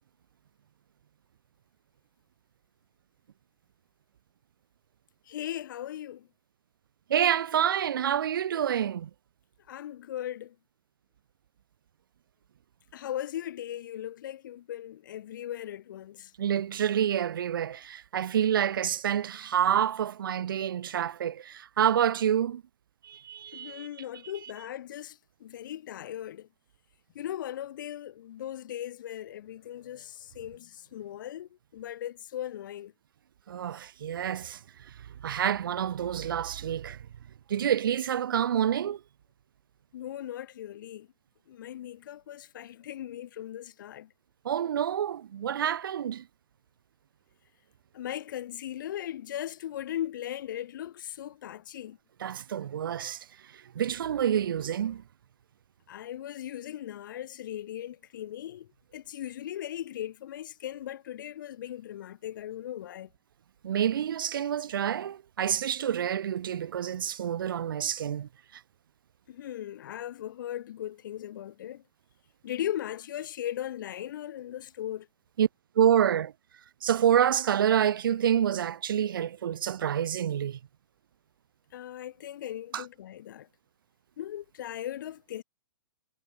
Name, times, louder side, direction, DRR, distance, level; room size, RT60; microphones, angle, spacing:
voice 1, 5.3-6.3 9.7-10.5 12.9-16.3 23.5-26.5 27.1-32.9 39.9-41.1 41.5-44.1 47.9-52.0 55.9-63.1 69.3-71.8 72.4-75.1 81.7-83.5 84.2-85.4, left 11 dB, 60° left, 1.7 m, -38 dB
voice 2, 7.1-9.1 16.4-22.6 23.0-23.9 33.5-34.6 35.2-37.0 37.5-39.0 44.4-46.2 52.2-53.2 53.7-55.0 63.6-68.3 75.4-75.5 75.7-76.3 76.8-80.6 82.7-82.8, right 9 dB, 70° right, 1.6 m, -27 dB
hypercardioid pair, 135°, 12 cm